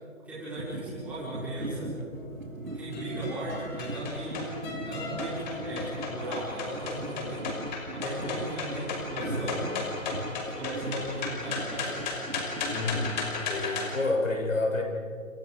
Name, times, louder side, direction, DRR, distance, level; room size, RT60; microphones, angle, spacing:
voice 1, 0.2-1.9 2.7-7.5 7.9-9.6 10.5-11.9, right 1 dB, 5° right, -12 dB, 5.1 m, -37 dB
sound 1, 0.6-13.5, right 1 dB, 75° right, 4.1 m, -40 dB
sound 2, 2.1-13.9, left 4 dB, 35° left, 5.4 m, -35 dB
voice 2, 12.7-13.1 13.5-14.8, left 2 dB, 70° left, 1 dB, 7.6 m, -28 dB
30.0 x 29.5 x 5.0 m, 2.1 s
figure-of-eight pair, 145°, 40 cm